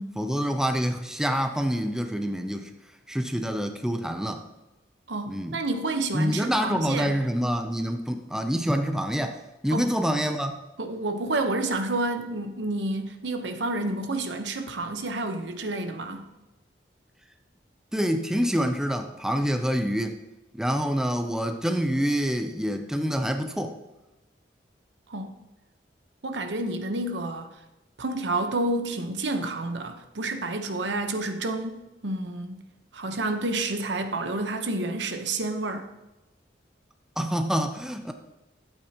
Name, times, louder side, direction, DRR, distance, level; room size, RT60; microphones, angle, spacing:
voice 1, 0.2-2.7 3.1-4.4 5.3-5.6 6.1-10.6 17.9-20.2 20.5-23.8 37.2-38.1, equal, 5° right, 0.4 m, -26 dB
voice 2, 5.1-7.1 9.7-9.9 10.8-16.3 25.1-25.3 26.2-27.5 28.0-32.6 32.9-35.8, right 2 dB, 80° right, 0.9 m, -29 dB
12.5 x 8.2 x 2.9 m
head